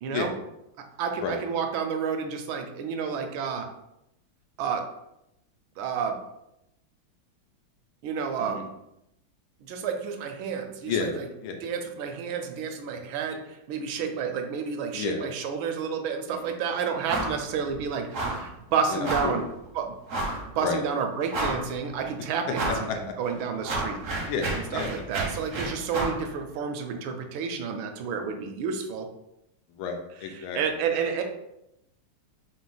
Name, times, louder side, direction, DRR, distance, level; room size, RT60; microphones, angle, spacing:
voice 1, 1.0-3.7 4.6-4.9 5.8-6.2 8.0-8.7 9.7-11.3 11.6-13.4 13.7-19.4 19.7-19.9 20.5-24.0 24.5-29.1 30.5-31.2, right 6 dB, 75° right, 5 dB, 1.3 m, -30 dB
voice 2, 10.9-11.6 14.9-15.2 16.3-16.5 18.9-19.4 20.6-20.8 22.7-23.0 24.3-25.0 29.7-30.6, left 5 dB, 85° left, 3 dB, 1.5 m, -31 dB
sound 1, 17.1-17.4 17.7-17.8 18.1-18.5 19.0-19.4 20.1-20.4 20.9-21.0 21.3-21.8 22.5-22.9 23.3-26.2, right 2 dB, 60° right, 0.8 m, -30 dB
4.7 x 2.0 x 3.9 m, 0.85 s
omnidirectional pair, 2.3 m